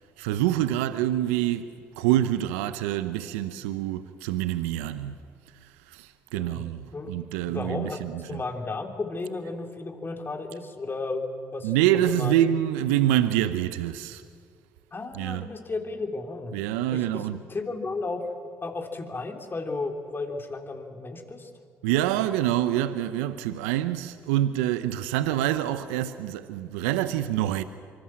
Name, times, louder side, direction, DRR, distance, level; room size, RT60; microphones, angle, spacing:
voice 1, 0.2-5.2 5.6-8.4 11.6-14.2 15.1-15.5 16.5-17.4 21.8-27.6, right 12 dB, 80° right, 0.8 m, -26 dB
voice 2, 6.3-6.6 6.9-7.1 7.5-11.7 12.1-12.3 14.9-16.5 16.9-18.3 18.6-21.5, left 3 dB, 30° left, 3.5 m, -34 dB
24.5 x 24.5 x 7.6 m
hypercardioid pair, 55°, 7 cm